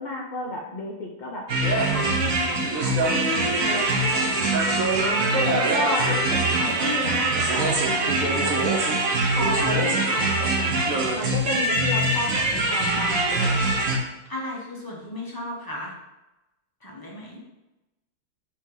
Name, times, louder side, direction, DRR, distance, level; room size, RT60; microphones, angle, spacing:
voice 1, 0.0-1.5 1.9-4.6 5.3-8.5 9.3-13.8, left 1 dB, 75° left, -1 dB, 0.4 m, -32 dB
sound 1, 1.5-14.0, right 2 dB, 50° right, 1.2 m, -23 dB
voice 2, 14.3-15.9 16.8-17.4, left 1 dB, 20° left, -3 dB, 0.7 m, -35 dB
8.2 x 2.9 x 3.9 m, 0.97 s
omnidirectional pair, 2.2 m